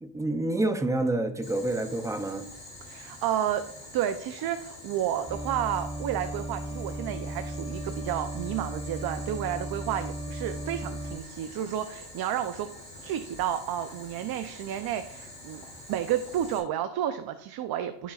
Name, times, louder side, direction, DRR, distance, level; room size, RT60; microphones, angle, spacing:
voice 1, 0.0-2.5, right 2 dB, 5° right, 8 dB, 0.4 m, -28 dB
Boiling, 1.4-16.6, left 1 dB, 15° left, 3.2 m, -46 dB
voice 2, 2.8-3.7 3.9-12.7 13.0-18.1, right 10 dB, 50° right, 9 dB, 0.6 m, -31 dB
sound 1, 5.3-11.2, right 1 dB, 25° right, 2.6 m, -36 dB
13.5 x 6.2 x 2.4 m, 0.75 s
cardioid pair, 125°, 49 cm